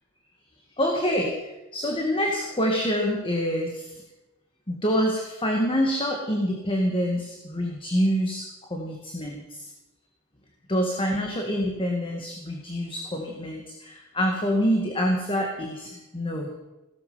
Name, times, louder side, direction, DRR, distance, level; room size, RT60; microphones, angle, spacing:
voice 1, 0.8-3.9 4.7-9.7 10.7-16.5, equal, 25° left, 1 dB, 1.8 m, -26 dB
17.0 x 13.5 x 5.6 m, 1.0 s
head